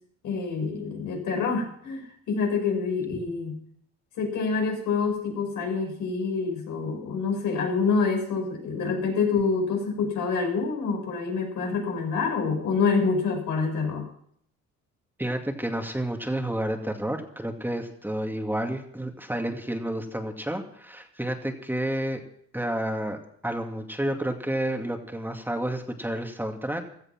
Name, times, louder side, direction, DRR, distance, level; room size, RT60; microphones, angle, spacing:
voice 1, 0.2-3.6 4.2-14.1, left 4 dB, 85° left, 1 dB, 6.3 m, -27 dB
voice 2, 15.2-22.2 22.5-26.8, right 1 dB, 5° right, 4 dB, 2.3 m, -30 dB
16.5 x 13.5 x 6.0 m, 0.65 s
cardioid pair, 90°, 30 cm